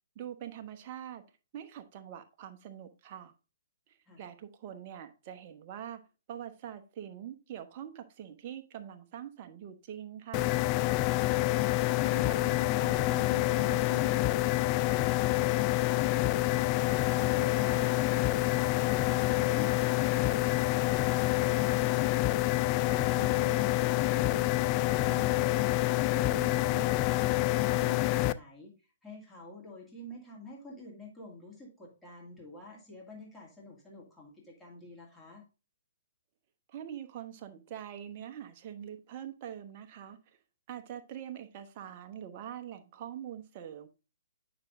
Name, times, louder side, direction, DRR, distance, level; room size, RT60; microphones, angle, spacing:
voice 1, 0.1-1.2 1.5-3.3 3.9-6.0 6.3-10.5 36.7-40.2 40.7-43.9, right 10 dB, 35° right, 7 dB, 1.0 m, -44 dB
sound 1, 10.3-28.3, left 17 dB, 30° left, 0.3 m, -27 dB
voice 2, 26.1-35.4, equal, 5° left, -4 dB, 2.3 m, -47 dB
9.5 x 6.0 x 2.6 m, 0.31 s
figure-of-eight pair, 125°, 0 cm